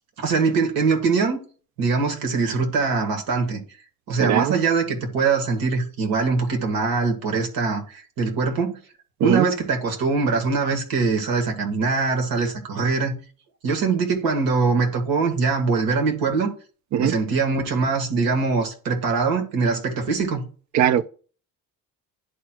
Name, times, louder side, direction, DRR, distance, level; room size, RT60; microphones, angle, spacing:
voice 1, 0.2-1.4 1.8-3.6 4.1-8.8 9.2-13.2 13.6-16.5 17.0-20.4, right 4 dB, 80° right, 1.9 m, -22 dB
voice 2, 4.2-4.5 9.2-9.5 16.9-17.1 20.7-21.0, right 10 dB, 55° right, 0.5 m, -19 dB
11.0 x 4.5 x 2.3 m
cardioid pair, 130°, 35 cm